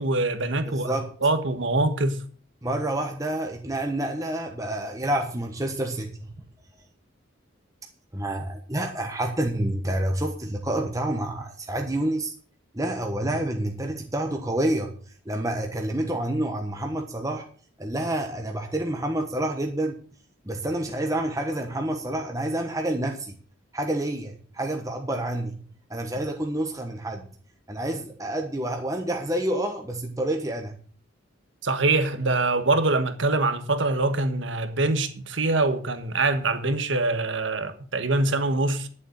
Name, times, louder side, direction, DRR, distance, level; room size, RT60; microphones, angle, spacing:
voice 1, 0.0-0.9 1.2-2.2 31.6-38.9, right 2 dB, 70° right, 1.4 m, -24 dB
voice 2, 0.6-1.1 2.6-6.3 8.1-12.3 12.7-14.9 15.2-17.4 17.8-20.0 20.4-23.3 23.7-25.6 25.9-27.2 27.7-30.7, right 1 dB, 15° right, 1.2 m, -28 dB
11.0 x 7.4 x 6.4 m
head